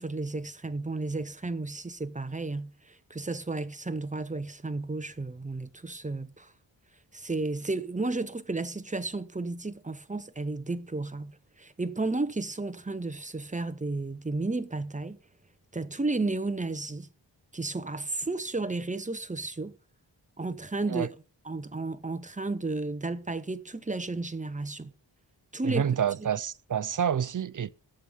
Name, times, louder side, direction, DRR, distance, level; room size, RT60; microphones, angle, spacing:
voice 1, 0.0-6.5 7.1-15.2 15.7-17.1 17.5-19.7 20.4-21.1 21.4-24.9 25.5-25.8 26.2-26.3, right 3 dB, 15° right, 0.8 m, -33 dB
voice 2, 25.6-27.7, right 8 dB, 45° right, 0.6 m, -28 dB
8.8 x 8.0 x 7.3 m
wide cardioid pair, 120°, 44 cm